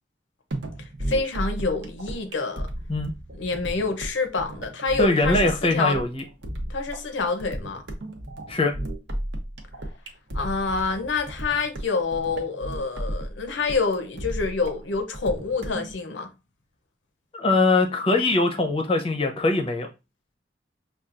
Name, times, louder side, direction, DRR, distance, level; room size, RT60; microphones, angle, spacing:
sound 1, 0.5-15.9, right 1 dB, 70° right, 0.8 m, -34 dB
voice 1, 1.1-2.7 3.3-6.0 6.7-7.8 10.3-16.3, left 4 dB, 85° left, 0.7 m, -27 dB
voice 2, 5.0-6.2 8.5-8.7 17.3-19.9, left 2 dB, 30° left, 0.6 m, -22 dB
5.5 x 2.3 x 2.4 m
head